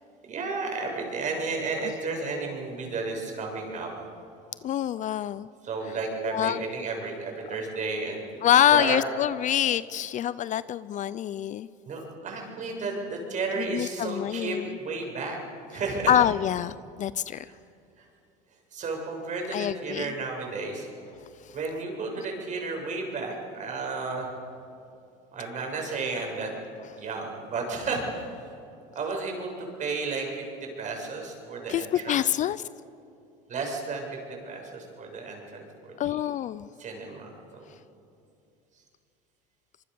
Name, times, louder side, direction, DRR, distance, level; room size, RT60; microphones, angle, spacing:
voice 1, 0.3-3.9 5.6-8.2 8.7-9.0 11.9-15.4 15.7-16.2 17.5-17.6 18.0-18.1 18.7-20.9 21.5-24.3 25.3-26.5 27.0-28.5 29.0-32.2 33.5-36.2 36.8-37.7, right 3 dB, 40° right, 1 dB, 7.2 m, -33 dB
voice 2, 4.6-5.5 6.2-6.6 8.4-11.7 13.6-14.8 16.1-17.5 19.5-20.1 21.4-21.5 31.7-32.6 36.0-36.7, left 10 dB, 40° left, 17 dB, 0.5 m, -26 dB
25.5 x 23.5 x 7.0 m, 2.6 s
supercardioid pair, 115°, 20 cm